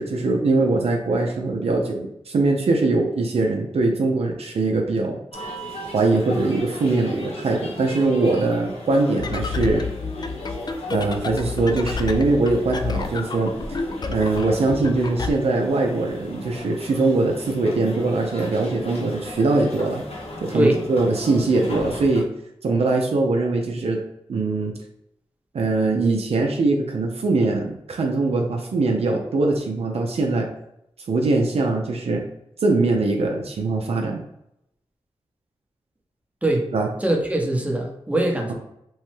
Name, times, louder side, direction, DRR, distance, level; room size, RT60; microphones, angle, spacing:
voice 1, 0.0-5.5 5.9-9.8 10.9-13.5 14.1-20.0 20.4-22.3 22.6-24.0 24.3-24.7 25.5-30.5 31.1-32.3 32.6-34.2 36.7-36.9, right 3 dB, 65° right, 1 dB, 0.5 m, -22 dB
sound 1, 5.3-22.2, left 1 dB, 65° left, 0.9 m, -37 dB
sound 2, 9.2-15.3, left 4 dB, 40° left, 0.3 m, -30 dB
voice 2, 37.0-38.5, right 1 dB, 10° right, 1 dB, 0.7 m, -22 dB
3.1 x 2.1 x 3.1 m, 0.80 s
cardioid pair, 50°, 11 cm